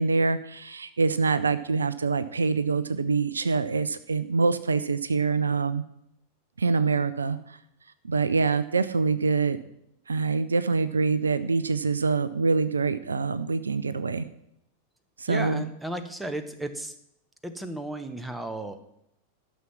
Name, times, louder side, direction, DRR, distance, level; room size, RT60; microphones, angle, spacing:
voice 1, 0.0-5.8 6.6-7.6 8.0-9.6 10.1-14.2 15.2-15.6, right 4 dB, 75° right, 14 dB, 0.5 m, -25 dB
voice 2, 15.3-16.9 17.4-18.8, right 1 dB, 5° right, 9 dB, 1.0 m, -34 dB
12.5 x 6.3 x 6.0 m, 0.77 s
figure-of-eight pair, 90°, 0 cm